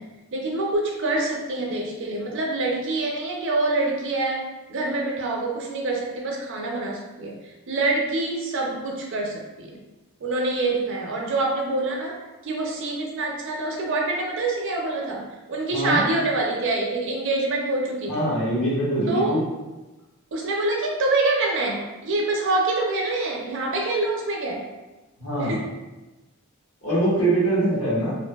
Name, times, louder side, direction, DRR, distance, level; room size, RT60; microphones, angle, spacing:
voice 1, 0.0-7.4 7.7-9.8 10.2-12.2 12.4-15.2 15.5-18.2 19.1-19.4 20.3-24.6 25.4-25.6, right 2 dB, 55° right, 0 dB, 0.5 m, -26 dB
voice 2, 15.7-16.0 18.1-19.4 25.2-25.7 26.8-28.1, right 1 dB, 60° left, -8 dB, 1.1 m, -23 dB
2.6 x 2.5 x 2.2 m, 1.1 s
head